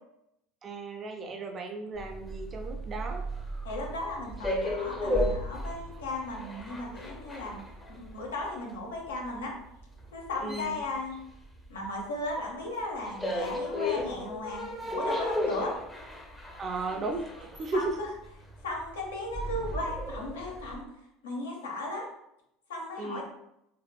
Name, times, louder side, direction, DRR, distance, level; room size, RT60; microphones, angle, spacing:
voice 1, 0.6-3.3 10.4-10.8 16.6-18.0 23.0-23.2, right 3 dB, 35° right, 3 dB, 0.5 m, -35 dB
sound 1, 2.0-12.0 12.3-20.8, left 1 dB, 10° left, 0.6 m, -35 dB
voice 2, 3.6-7.6 7.9-9.5 10.1-11.2 11.7-15.8 16.9-17.0 17.7-17.8 18.6-20.8 21.2-22.1 22.7-23.2, left 2 dB, 90° left, -1 dB, 0.7 m, -36 dB
2.6 x 2.4 x 2.3 m, 0.81 s
hypercardioid pair, 85°, 0 cm